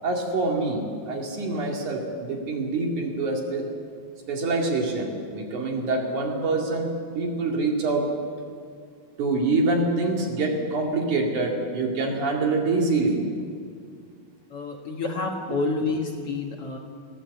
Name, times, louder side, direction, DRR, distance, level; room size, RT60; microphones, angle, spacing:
voice 1, 0.0-3.7 4.3-6.9 7.2-8.1 9.2-13.3, right 3 dB, 60° right, 0 dB, 3.6 m, -25 dB
voice 2, 14.5-16.8, left 3 dB, 50° left, 1 dB, 2.0 m, -28 dB
19.5 x 16.0 x 8.3 m, 2.1 s
omnidirectional pair, 4.0 m